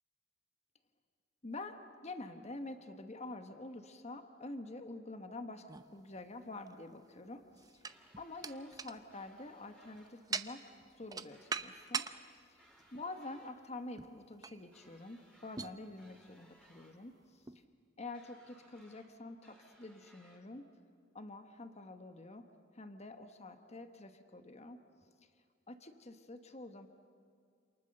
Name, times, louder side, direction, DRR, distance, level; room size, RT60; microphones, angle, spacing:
voice 1, 1.4-7.8 8.2-10.6 11.0-12.1 12.5-12.6 12.9-17.4 18.0-20.6 21.1-22.4 22.7-24.8 25.7-26.9, left 2 dB, 35° left, 7 dB, 1.4 m, -47 dB
sound 1, 5.7-6.7 7.4-12.2 12.7-12.9 14.0-14.2 14.4-14.6 15.6-15.8 16.6-16.7 17.5-17.6, right 5 dB, 20° right, 0.8 m, -42 dB
sound 2, 7.9-8.8 9.1-10.1 11.3-12.3 12.6-13.5 14.7-15.7 16.0-17.0 18.1-19.1 19.4-20.4, equal, 5° left, 4.3 m, -65 dB
28.0 x 28.0 x 6.7 m, 2.3 s
head